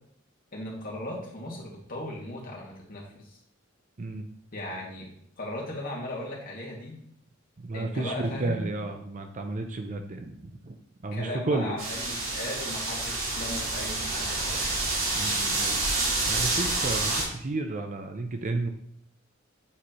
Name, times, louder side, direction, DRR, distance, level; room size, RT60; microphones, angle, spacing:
voice 1, 0.5-3.4 4.5-5.1 5.4-7.0 7.7-8.7 11.1-14.7, left 1 dB, 45° left, -4 dB, 2.1 m, -37 dB
voice 2, 7.6-10.8 11.0-11.8 15.1-15.8 16.2-18.7, right 2 dB, 40° right, 6 dB, 0.5 m, -32 dB
sound 1, 11.8-17.2, right 2 dB, 70° right, 2.6 m, -28 dB
8.5 x 4.8 x 3.0 m, 0.69 s
head